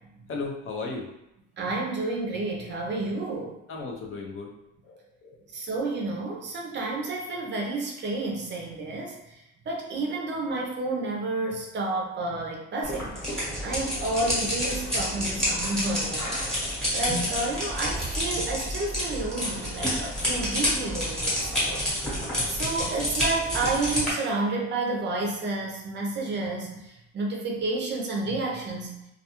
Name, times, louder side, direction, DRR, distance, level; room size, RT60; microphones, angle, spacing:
voice 1, 0.3-1.1 3.7-4.5 4.8-5.4, left 3 dB, 45° left, 0 dB, 0.5 m, -35 dB
voice 2, 1.6-3.6 5.5-21.8 22.5-28.9, right 2 dB, 35° right, 0 dB, 0.5 m, -30 dB
sound 1, 12.8-24.1, equal, ahead, 0.9 m, -29 dB
2.3 x 2.2 x 2.8 m, 0.87 s
cardioid pair, 140°, 30 cm